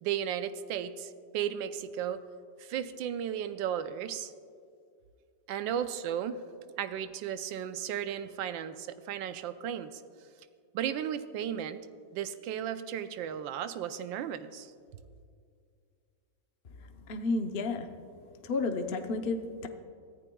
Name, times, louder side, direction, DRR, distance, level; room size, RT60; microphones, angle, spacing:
voice 1, 0.0-2.2 2.6-4.3 5.5-6.4 6.8-10.0 10.7-11.9 12.1-14.7, right 9 dB, 90° right, 10 dB, 1.4 m, -35 dB
voice 2, 16.9-17.9 18.4-19.7, left 3 dB, 55° left, 5 dB, 0.6 m, -32 dB
23.5 x 14.5 x 2.3 m, 2.2 s
omnidirectional pair, 2.0 m